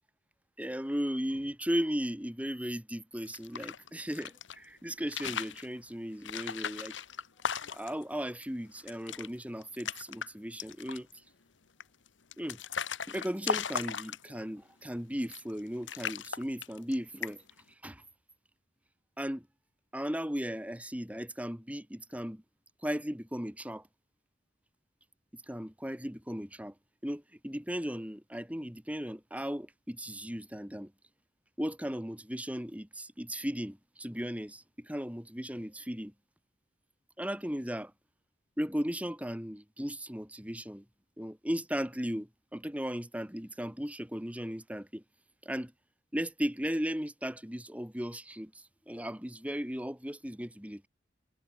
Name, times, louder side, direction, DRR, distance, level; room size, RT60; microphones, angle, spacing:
voice 1, 0.6-6.9 7.7-11.1 12.4-12.6 13.1-17.4 17.8-18.0 19.2-19.5 19.9-22.4 22.8-23.8 25.5-26.7 27.0-30.9 31.6-36.1 37.2-37.9 38.6-40.8 41.2-45.0 45.4-45.7 46.1-50.9, equal, 10° right, 3.0 m, -36 dB
sound 1, 3.2-4.6 5.0-5.7 6.2-8.0 8.4-8.5 8.8-9.3 9.6-10.3 10.6-11.1 11.8-14.5 15.2-15.6 15.9-16.9 17.2-17.6, left 7 dB, 90° left, 1.4 m, -37 dB
head